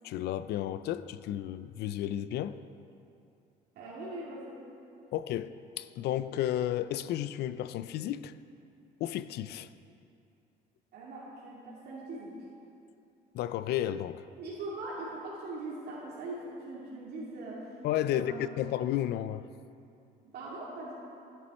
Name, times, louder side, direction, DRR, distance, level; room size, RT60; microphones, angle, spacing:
voice 1, 0.0-2.6 5.1-5.5 5.8-8.3 9.0-9.7 13.3-14.2 17.8-19.4, left 12 dB, 75° left, 14 dB, 0.5 m, -32 dB
voice 2, 3.7-4.6 10.9-12.3 14.4-17.7 18.0-18.4 20.2-20.9, right 2 dB, 70° right, -7 dB, 2.6 m, -41 dB
15.5 x 10.5 x 4.3 m, 2.6 s
cardioid pair, 110°, 17 cm